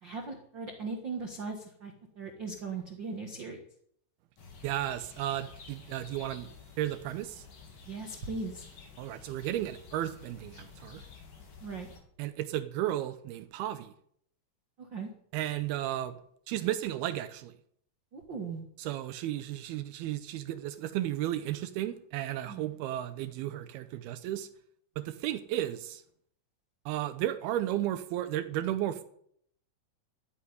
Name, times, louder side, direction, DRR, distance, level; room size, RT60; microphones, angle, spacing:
voice 1, 0.0-3.6 7.9-8.6 11.6-11.9 14.8-15.1 18.1-18.6 22.5-22.7, right 4 dB, 50° right, 3 dB, 1.4 m, -38 dB
sound 1, 4.4-12.0, left 5 dB, 60° left, 5.0 m, -51 dB
voice 2, 4.6-6.5 6.8-7.5 9.0-11.1 12.2-13.9 15.3-16.1 16.5-17.5 18.8-24.5 25.0-26.0 26.9-29.0, right 13 dB, 85° right, 10 dB, 2.7 m, -34 dB
13.0 x 8.6 x 9.7 m, 0.67 s
omnidirectional pair, 4.4 m